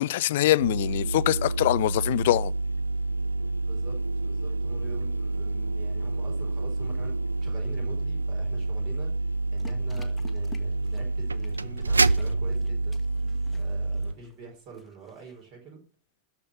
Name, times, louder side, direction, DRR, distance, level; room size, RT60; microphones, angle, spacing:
voice 1, 0.0-2.5, left 15 dB, 55° left, 0.3 m, -23 dB
sound 1, 0.6-14.1, right 2 dB, 80° right, 0.4 m, -28 dB
voice 2, 3.4-13.0 13.5-15.8, right 4 dB, 40° right, 4.5 m, -46 dB
sound 2, 9.6-15.5, left 4 dB, 10° left, 1.3 m, -52 dB
12.5 x 4.4 x 6.7 m
figure-of-eight pair, 90°, 0 cm